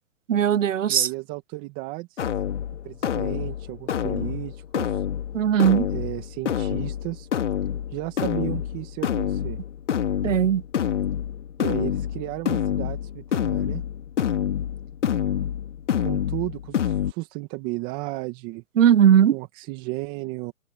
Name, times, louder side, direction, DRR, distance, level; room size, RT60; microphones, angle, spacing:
voice 1, 0.3-1.1 5.3-5.9 10.2-10.6 18.8-19.4, right 9 dB, 70° right, 1.1 m, -18 dB
voice 2, 0.9-2.3 2.8-5.1 5.9-7.3 7.9-9.6 11.6-13.8 16.0-18.6 19.3-20.5, right 22 dB, 25° right, 1.9 m, -34 dB
sound 1, 2.2-17.1, left 9 dB, 60° left, 2.8 m, -27 dB
hypercardioid pair, 155°, 40 cm